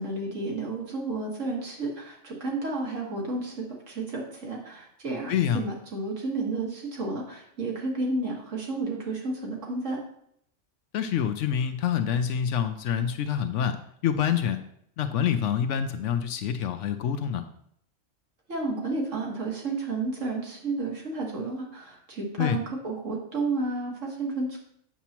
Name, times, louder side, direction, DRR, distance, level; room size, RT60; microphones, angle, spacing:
voice 1, 0.0-10.0 18.5-24.6, right 3 dB, 80° right, -1 dB, 2.0 m, -31 dB
voice 2, 5.3-5.6 10.9-14.6 15.0-17.4 22.4-22.6, left 8 dB, 80° left, 9 dB, 0.9 m, -26 dB
8.5 x 7.0 x 2.9 m, 0.69 s
omnidirectional pair, 1.3 m